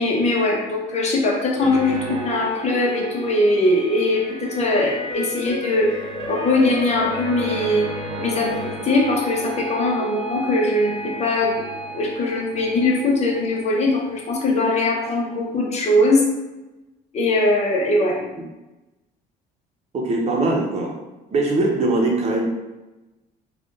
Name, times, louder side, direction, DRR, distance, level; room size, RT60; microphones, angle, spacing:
voice 1, 0.0-7.9 8.2-16.3 17.1-18.2, left 2 dB, 40° left, -1 dB, 0.9 m, -21 dB
sound 1, 1.6-14.9 15.2-15.4, right 1 dB, 90° right, 0.7 m, -32 dB
voice 2, 19.9-21.0 21.3-22.5, right 2 dB, 40° right, 0 dB, 0.9 m, -21 dB
3.5 x 2.4 x 3.8 m, 1.1 s
cardioid pair, 110°, 17 cm